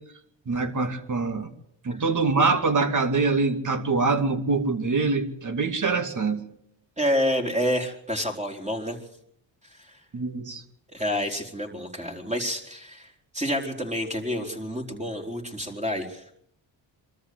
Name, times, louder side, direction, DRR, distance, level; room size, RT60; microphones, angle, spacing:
voice 1, 0.5-1.5 1.8-6.4 10.1-10.6, right 4 dB, 40° right, 8 dB, 2.7 m, -24 dB
voice 2, 7.0-9.0 9.7-10.0 10.9-13.1 13.3-16.2, equal, 15° right, 3 dB, 4.5 m, -28 dB
24.5 x 13.5 x 8.1 m, 0.72 s
cardioid pair, 80°, 44 cm